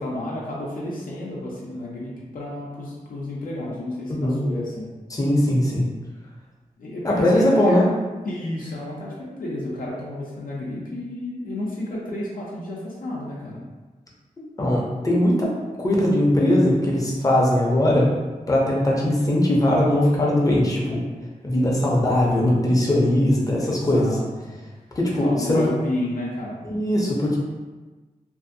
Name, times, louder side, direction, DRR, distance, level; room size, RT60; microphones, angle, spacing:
voice 1, 0.0-4.9 6.8-7.8 8.2-13.6 23.5-24.6 25.2-26.6, left 1 dB, 80° left, -5 dB, 0.6 m, -31 dB
voice 2, 5.1-5.8 7.0-7.9 14.6-15.5 15.8-18.1 18.5-21.0 21.4-24.1 25.0-25.6 26.6-27.4, left 1 dB, 25° left, -4 dB, 0.6 m, -20 dB
2.6 x 2.5 x 2.6 m, 1.2 s
wide cardioid pair, 115°, 14 cm